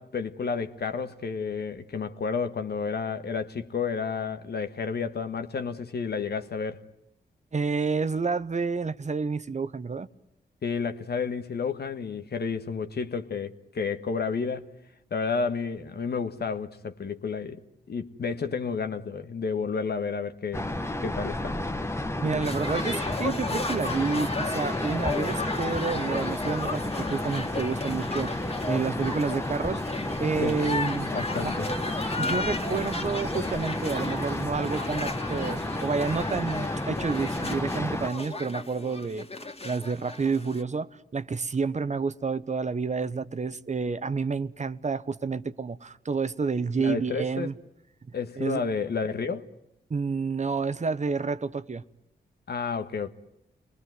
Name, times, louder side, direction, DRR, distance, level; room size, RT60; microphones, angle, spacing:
voice 1, 0.0-6.8 10.6-14.7 15.1-17.6 17.9-20.6 21.0-21.6 30.4-30.6 31.0-31.7 46.8-47.5 48.1-49.4 52.5-53.1, left 5 dB, 65° left, 1.5 m, -31 dB
voice 2, 7.5-10.1 22.2-28.3 28.7-31.1 31.4-31.5 32.2-39.3 39.6-47.5 48.4-48.6 49.9-51.8, right 4 dB, 40° right, 1.0 m, -29 dB
sound 1, 20.5-38.1, left 1 dB, 15° left, 1.4 m, -32 dB
sound 2, 22.4-40.6, left 2 dB, 35° left, 2.5 m, -35 dB
29.5 x 20.5 x 9.4 m
cardioid pair, 55°, 18 cm